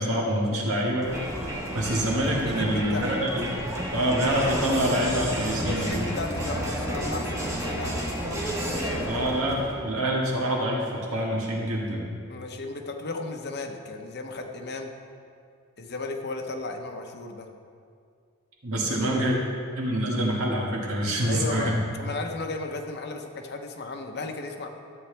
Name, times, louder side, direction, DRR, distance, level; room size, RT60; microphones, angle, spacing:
voice 1, 0.0-3.6 3.9-6.0 9.0-12.1 18.6-19.4 19.8-21.8, right 1 dB, 85° right, -2 dB, 1.9 m, -26 dB
Crowd, 1.0-9.9, equal, 15° right, 1.1 m, -31 dB
voice 2, 2.4-3.1 4.7-4.8 5.2-9.3 12.3-14.9 15.8-17.5 18.7-19.1 21.3-24.7, left 3 dB, 50° left, 4 dB, 0.8 m, -35 dB
13.0 x 8.1 x 3.4 m, 2.3 s
head